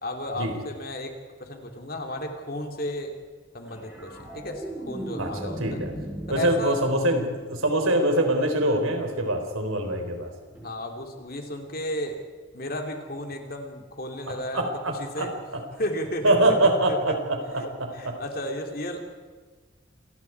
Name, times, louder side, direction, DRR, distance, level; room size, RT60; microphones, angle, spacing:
voice 1, 0.0-3.1 3.5-5.8 6.3-6.8 10.5-12.2 12.5-15.3 15.7-17.2 17.5-19.0, left 1 dB, 45° left, 4 dB, 2.9 m, -34 dB
sound 1, 3.6-8.1 10.5-10.7, right 1 dB, 5° right, 5.2 m, -38 dB
voice 2, 6.3-10.3 14.5-15.3 16.2-17.1 18.0-18.1, right 1 dB, 85° right, 4 dB, 4.2 m, -23 dB
27.5 x 20.0 x 4.7 m, 1.5 s
head